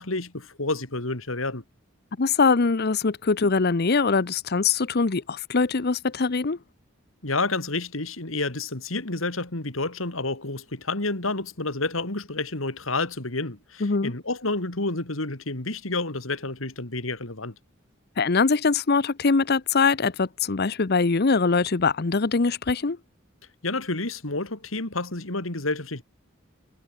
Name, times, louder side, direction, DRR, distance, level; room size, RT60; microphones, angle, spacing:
voice 1, 0.0-1.6 7.2-17.5 23.6-26.0, left 2 dB, 80° left, 3.4 m, -29 dB
voice 2, 2.2-6.6 13.8-14.1 18.2-23.0, left 4 dB, 50° left, 0.8 m, -22 dB
head